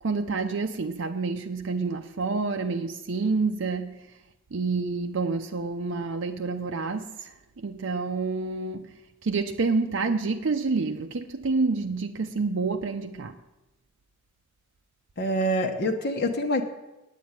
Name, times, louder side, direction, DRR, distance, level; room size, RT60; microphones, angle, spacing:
voice 1, 0.0-4.1 4.5-8.9 9.2-13.4, right 4 dB, 65° right, 4 dB, 0.6 m, -28 dB
voice 2, 15.2-16.6, equal, 55° left, 3 dB, 1.2 m, -25 dB
9.4 x 8.3 x 8.9 m, 1.0 s
head